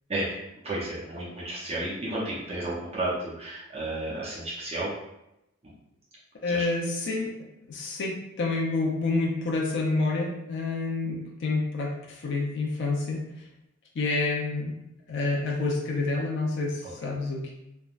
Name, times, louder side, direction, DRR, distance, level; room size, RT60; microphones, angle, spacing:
voice 1, 0.6-4.9 6.5-6.7, right 1 dB, 30° right, -7 dB, 0.6 m, -32 dB
voice 2, 6.4-7.3 7.7-13.2 14.0-14.7 15.1-17.5, left 3 dB, 60° left, -2 dB, 0.4 m, -28 dB
3.3 x 2.1 x 2.4 m, 0.86 s
head